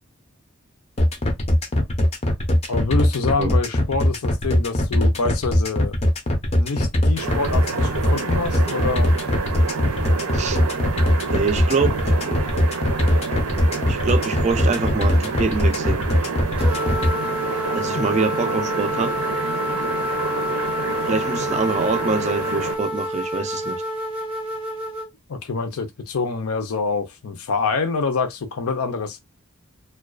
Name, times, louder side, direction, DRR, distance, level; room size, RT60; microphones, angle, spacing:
sound 1, 1.0-17.1, left 1 dB, 30° left, 0.5 m, -20 dB
voice 1, 2.7-5.9 6.6-9.1 17.9-18.1 25.3-29.2, left 4 dB, 80° left, 0.5 m, -26 dB
sound 2, 7.2-22.8, right 4 dB, 80° right, 0.6 m, -28 dB
voice 2, 11.2-12.0 13.9-16.0 17.7-19.1 21.0-23.8, right 4 dB, 30° right, 0.3 m, -24 dB
sound 3, 16.6-25.1, left 1 dB, 5° right, 0.7 m, -28 dB
2.3 x 2.3 x 2.3 m
head